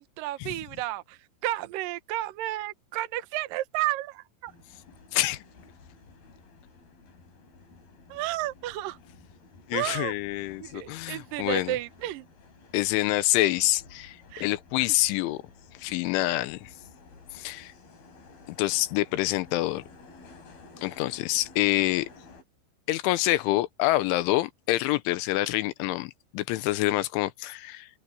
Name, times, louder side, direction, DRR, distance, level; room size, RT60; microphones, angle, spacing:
voice 1, 0.0-4.5 8.1-9.0 9.7-10.1 10.6-12.3 14.3-14.5, right 15 dB, 75° right, 2.1 m, -32 dB
sound 1, 4.5-22.4, left 3 dB, 50° left, 6.7 m, -53 dB
voice 2, 5.1-5.4 9.7-11.8 12.7-15.4 15.8-16.7 17.4-17.7 18.5-19.8 20.8-22.1 22.9-27.9, left 17 dB, 85° left, 3.3 m, -26 dB
open air
omnidirectional pair, 5.5 m